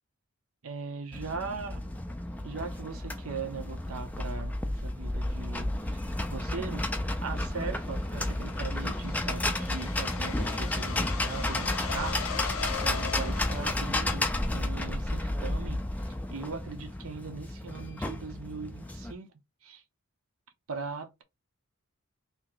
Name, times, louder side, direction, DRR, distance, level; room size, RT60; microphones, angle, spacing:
voice 1, 0.6-1.8 2.4-19.3 19.6-19.8 20.7-21.2, right 4 dB, 75° right, 0.8 m, -40 dB
sound 1, 1.1-19.1, left 1 dB, 5° left, 0.3 m, -32 dB
sound 2, 7.5-14.6, left 7 dB, 75° left, 0.5 m, -40 dB
2.9 x 2.7 x 3.8 m
head